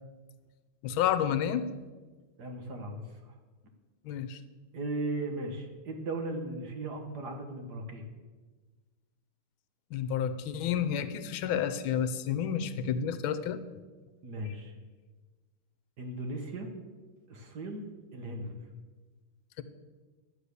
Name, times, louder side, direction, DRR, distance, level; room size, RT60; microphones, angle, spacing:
voice 1, 0.8-1.7 4.0-4.4 9.9-13.6, left 8 dB, 75° left, 12 dB, 1.5 m, -30 dB
voice 2, 2.4-3.3 4.7-8.0 14.2-14.7 16.0-16.7 17.3-17.9 18.1-18.5, right 2 dB, 55° right, 4 dB, 1.8 m, -37 dB
11.5 x 8.1 x 6.8 m, 1.3 s
omnidirectional pair, 2.4 m